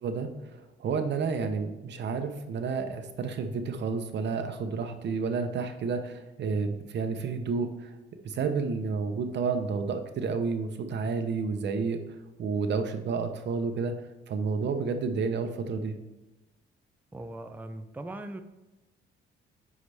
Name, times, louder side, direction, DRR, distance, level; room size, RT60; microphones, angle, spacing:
voice 1, 0.0-7.9 8.2-12.0 12.4-13.9 14.3-16.0, right 5 dB, 60° right, 7 dB, 0.9 m, -30 dB
voice 2, 17.1-18.4, right 1 dB, 10° right, 7 dB, 0.5 m, -39 dB
9.5 x 4.9 x 3.4 m, 1.1 s
cardioid pair, 90°, 20 cm